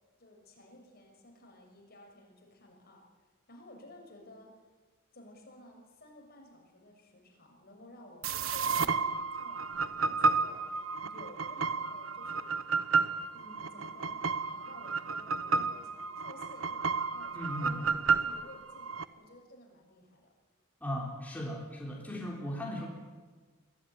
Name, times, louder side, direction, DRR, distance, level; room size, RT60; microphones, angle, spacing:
voice 1, 0.2-3.1 3.5-4.6 5.1-12.7 13.3-20.3, left 1 dB, 50° left, 2 dB, 6.2 m, -54 dB
sound 1, 8.2-19.0, right 4 dB, 85° right, 1.1 m, -32 dB
voice 2, 17.3-17.7 20.8-22.9, equal, 10° left, -3 dB, 4.1 m, -37 dB
24.0 x 16.5 x 9.7 m, 1.3 s
head